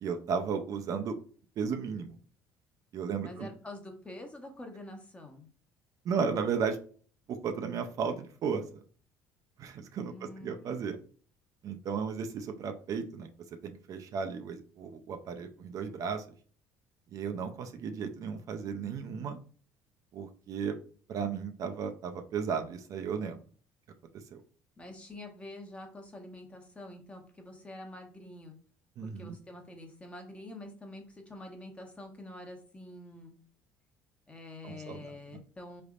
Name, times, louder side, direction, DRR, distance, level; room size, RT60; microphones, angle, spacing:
voice 1, 0.0-1.2 1.6-2.1 2.9-3.5 6.0-6.8 7.3-8.6 9.6-11.0 11.6-13.3 13.6-16.2 17.1-19.4 20.1-20.8 21.1-23.4 24.1-24.4 29.0-29.3 34.6-35.0 35.3-35.4, right 6 dB, 50° right, 6 dB, 0.5 m, -34 dB
voice 2, 3.2-5.5 10.0-10.7 24.8-28.6 29.0-33.3 34.3-35.8, left 1 dB, 15° left, 3 dB, 0.9 m, -46 dB
3.9 x 3.4 x 2.4 m, 0.43 s
cardioid pair, 110°, 7 cm